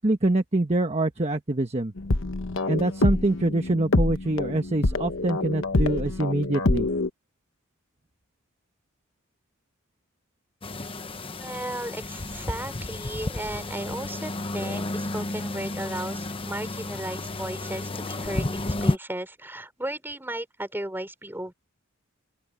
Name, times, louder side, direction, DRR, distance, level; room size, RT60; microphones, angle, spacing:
voice 1, 0.0-1.9 2.7-6.9, right 2 dB, 30° right, 1.1 m, -25 dB
sound 1, 2.0-7.1, left 2 dB, 60° left, 1.1 m, -26 dB
sound 2, 10.6-19.0, left 2 dB, 25° left, 1.0 m, -31 dB
voice 2, 11.4-21.5, right 1 dB, 10° right, 4.7 m, -35 dB
open air
head